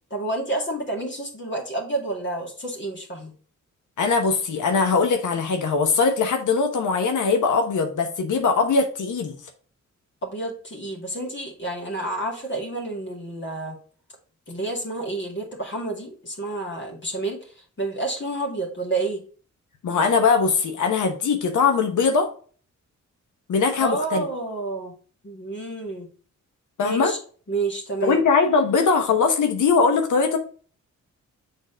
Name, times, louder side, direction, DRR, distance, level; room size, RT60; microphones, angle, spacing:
voice 1, 0.1-3.3 10.2-13.8 14.5-19.2 23.8-24.9 25.2-26.1 26.8-27.2 27.5-28.2, right 2 dB, 40° left, -1 dB, 2.2 m, -29 dB
voice 2, 4.0-9.4 19.8-22.3 23.5-24.3 26.8-27.1 28.0-30.4, left 5 dB, 80° left, 5 dB, 1.0 m, -21 dB
6.6 x 3.9 x 3.8 m, 0.41 s
cardioid pair, 80°, 30 cm